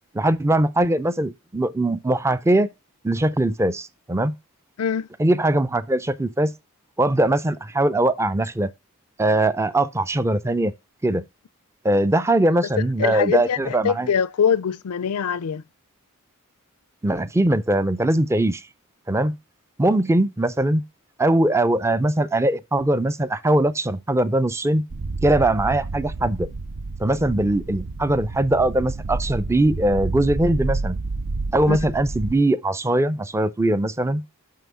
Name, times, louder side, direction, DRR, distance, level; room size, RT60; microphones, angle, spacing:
voice 1, 0.1-2.7 3.0-4.4 5.2-6.5 7.0-8.7 9.2-10.7 11.0-11.2 11.8-14.1 17.0-18.6 19.1-19.4 19.8-20.8 21.2-24.9 25.2-26.5 27.0-31.0 31.5-34.2, right 1 dB, 10° right, 0.4 m, -21 dB
voice 2, 4.8-5.1 13.0-15.6 31.7-31.8, left 7 dB, 85° left, 0.4 m, -23 dB
sound 1, 24.9-32.3, right 3 dB, 60° right, 0.6 m, -30 dB
6.1 x 5.7 x 6.1 m
head